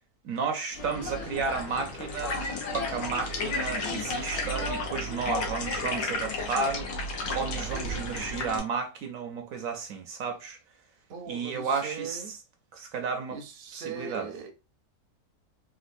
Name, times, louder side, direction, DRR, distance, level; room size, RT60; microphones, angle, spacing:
voice 1, 0.2-2.4 2.7-6.9 7.3-10.6 11.3-12.4 12.7-13.4 13.7-14.3, right 5 dB, 70° right, 1.0 m, -32 dB
sound 1, 0.7-8.6, left 2 dB, 75° left, 1.3 m, -33 dB
voice 2, 11.1-12.4 13.3-14.5, right 6 dB, 45° right, 0.7 m, -39 dB
3.9 x 2.3 x 2.5 m
omnidirectional pair, 1.6 m